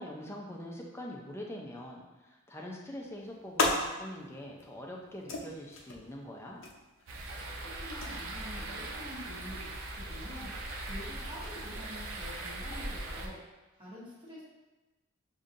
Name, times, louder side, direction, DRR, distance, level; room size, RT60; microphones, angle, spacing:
voice 1, 0.0-6.6, left 1 dB, 15° left, -1 dB, 0.5 m, -43 dB
sound 1, 2.8-13.3, left 2 dB, 75° left, 0.7 m, -40 dB
sound 2, 7.1-13.3, right 2 dB, 85° right, 0.7 m, -40 dB
voice 2, 7.8-9.7 10.0-10.5 10.9-13.4 13.7-14.4, equal, 25° right, -8 dB, 1.1 m, -46 dB
6.8 x 2.7 x 2.5 m, 1.1 s
head